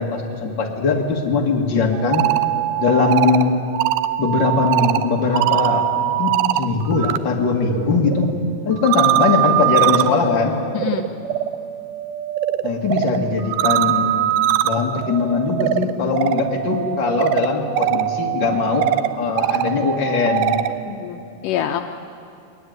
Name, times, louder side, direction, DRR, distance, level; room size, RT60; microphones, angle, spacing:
voice 1, 0.0-2.2 2.8-3.5 4.2-8.3 8.7-10.6 12.6-14.4 14.6-18.9 19.2-20.6, left 4 dB, 40° left, 1 dB, 2.0 m, -20 dB
sound 1, 1.9-7.2 7.5-20.8, right 13 dB, 80° right, 2.4 m, -22 dB
voice 2, 10.7-11.1 20.9-21.8, left 10 dB, 85° left, 6 dB, 1.8 m, -25 dB
21.0 x 19.5 x 9.4 m, 2.5 s
omnidirectional pair, 4.7 m